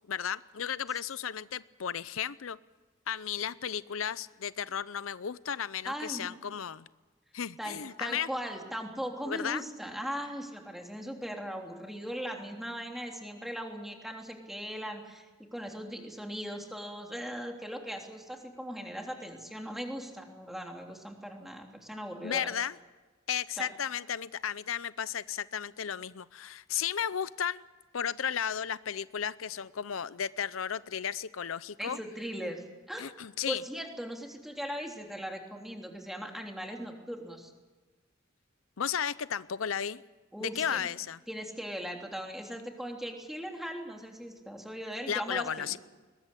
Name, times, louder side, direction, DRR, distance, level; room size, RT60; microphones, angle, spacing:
voice 1, 0.1-2.6 3.1-6.9 7.3-8.3 9.2-9.6 22.2-22.8 23.3-27.6 27.9-32.0 33.0-33.6 38.8-40.0 40.4-41.2 45.1-45.8, left 8 dB, 90° left, 17 dB, 0.6 m, -34 dB
voice 2, 5.8-6.3 7.6-15.3 15.5-22.5 23.6-23.7 31.8-33.1 33.5-37.5 40.3-40.9 41.3-45.7, equal, ahead, 2 dB, 3.3 m, -39 dB
21.5 x 20.5 x 8.5 m, 1.3 s
head